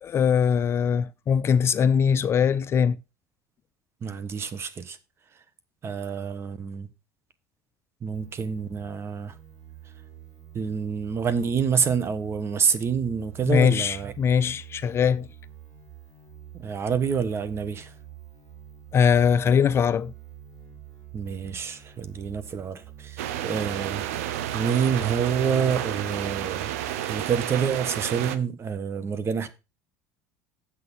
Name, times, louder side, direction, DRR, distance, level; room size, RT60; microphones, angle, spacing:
voice 1, 0.0-3.0 13.5-15.3 18.9-20.1, left 7 dB, 35° left, 0.4 m, -21 dB
voice 2, 4.0-5.0 5.8-6.9 8.0-9.4 10.5-14.1 16.5-17.9 21.1-24.3 24.5-29.5, right 6 dB, 35° right, 1.3 m, -27 dB
sound 1, 8.1-27.8, right 12 dB, 70° right, 5.3 m, -46 dB
sound 2, 23.2-28.4, right 11 dB, 90° right, 0.8 m, -31 dB
7.5 x 6.3 x 5.5 m
supercardioid pair, 110°, 8 cm